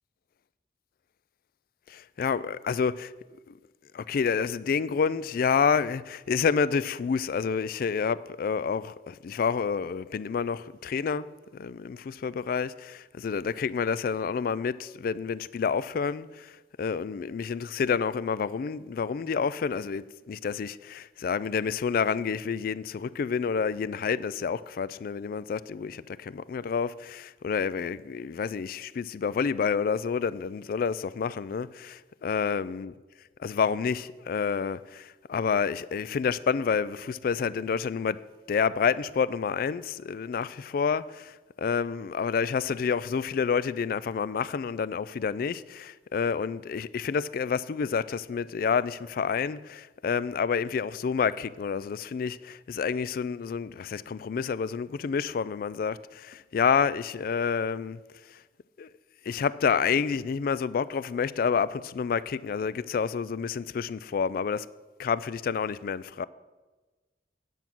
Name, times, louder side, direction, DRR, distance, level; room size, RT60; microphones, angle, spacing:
voice 1, 1.9-3.1 3.5-3.6 3.9-32.9 33.4-38.2 38.5-58.0 58.3-58.4 58.8-58.9 59.2-64.7 65.0-66.3, left 6 dB, 55° left, 0.3 m, -29 dB
9.1 x 7.3 x 6.0 m
head